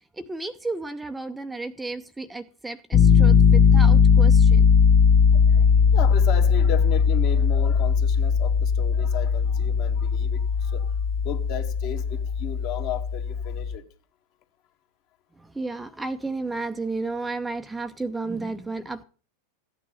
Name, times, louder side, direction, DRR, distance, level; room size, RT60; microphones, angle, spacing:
voice 1, 0.2-4.7 15.4-19.0, right 3 dB, 5° right, 0.7 m, -32 dB
Piano, 2.9-13.8, left 6 dB, 30° left, 0.8 m, -19 dB
voice 2, 5.3-13.8, left 10 dB, 45° left, 1.9 m, -35 dB
15.0 x 9.3 x 5.7 m
figure-of-eight pair, 90°, 0 cm